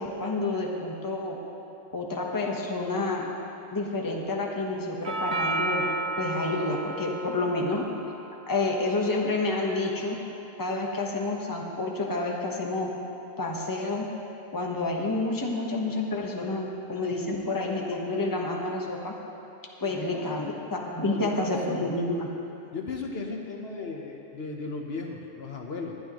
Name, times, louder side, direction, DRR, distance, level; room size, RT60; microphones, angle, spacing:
voice 1, 0.0-1.4 1.9-3.3 3.7-5.9 6.2-7.9 8.5-10.2 10.6-12.9 13.4-14.1 14.5-19.1 19.8-22.3, left 2 dB, 20° left, -1 dB, 1.1 m, -29 dB
Doorbell, 5.0-13.1, right 2 dB, 40° right, 1.0 m, -36 dB
voice 2, 19.8-20.5 21.0-21.8 22.7-26.0, left 4 dB, 65° left, 1 dB, 1.2 m, -36 dB
21.5 x 9.4 x 3.0 m, 2.8 s
omnidirectional pair, 1.2 m